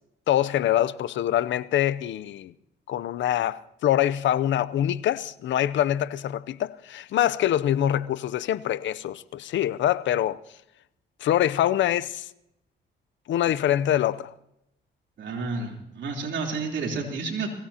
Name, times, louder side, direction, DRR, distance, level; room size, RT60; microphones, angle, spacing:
voice 1, 0.3-2.5 2.9-10.4 11.2-12.3 13.3-14.3, left 12 dB, 70° left, 0.6 m, -24 dB
voice 2, 15.2-17.5, right 4 dB, 65° right, 3.5 m, -30 dB
23.5 x 16.5 x 2.9 m
cardioid pair, 90°, 20 cm